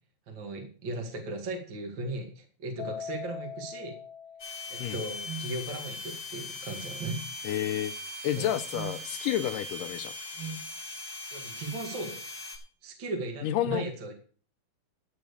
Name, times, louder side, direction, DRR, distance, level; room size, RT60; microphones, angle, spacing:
voice 1, 0.3-4.0 4.7-7.2 8.4-8.5 11.3-12.2 12.8-14.2, right 2 dB, 35° right, 2 dB, 2.4 m, -37 dB
Keyboard (musical), 2.8-5.3, left 7 dB, 60° left, 2.6 m, -42 dB
sound 1, 4.4-12.6, left 2 dB, 40° left, 3.2 m, -40 dB
sound 2, 5.3-5.5 7.0-7.3 8.7-9.0 10.4-10.7, right 5 dB, 75° right, 3.0 m, -39 dB
voice 2, 7.4-7.9 8.2-10.1 13.4-13.9, left 12 dB, 80° left, 9 dB, 2.2 m, -30 dB
11.5 x 6.0 x 6.9 m, 0.42 s
omnidirectional pair, 4.0 m